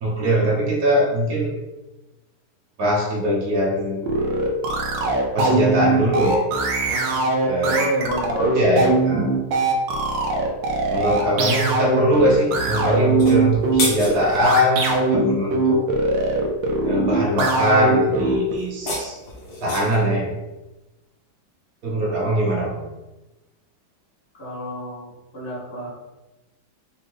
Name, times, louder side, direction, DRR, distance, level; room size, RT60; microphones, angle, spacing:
voice 1, 0.0-1.6 2.8-4.0 5.3-6.5 7.4-7.8 8.5-9.3 10.9-15.8 16.8-19.2 19.6-20.4 21.8-22.9, equal, 50° right, -4 dB, 1.5 m, -21 dB
sound 1, 4.0-18.5, right 2 dB, 70° right, 1.3 m, -21 dB
voice 2, 7.7-8.5 24.4-25.9, right 1 dB, 30° left, -9 dB, 1.4 m, -28 dB
sound 2, 13.1-14.6 18.6-20.1, left 2 dB, 60° left, 1.7 m, -29 dB
4.2 x 3.9 x 3.1 m, 1.1 s
omnidirectional pair, 2.3 m